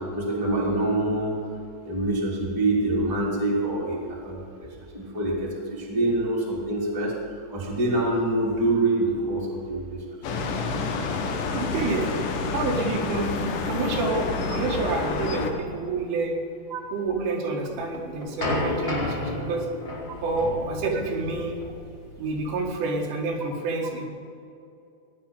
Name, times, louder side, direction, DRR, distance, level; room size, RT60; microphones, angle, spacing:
voice 1, 0.1-1.4 1.8-4.7 4.9-7.1 7.5-10.0 16.7-16.8, right 2 dB, 5° right, -5 dB, 1.6 m, -25 dB
sound 1, 10.2-15.5, left 4 dB, 75° left, 1.9 m, -28 dB
voice 2, 11.5-12.1 12.5-13.4 13.7-16.4 16.9-19.7 20.2-21.6 22.2-24.1, right 3 dB, 80° right, 0 dB, 4.3 m, -28 dB
sound 2, 17.6-22.6, left 1 dB, 40° left, 0.8 m, -32 dB
17.0 x 10.5 x 5.6 m, 2.6 s
omnidirectional pair, 5.6 m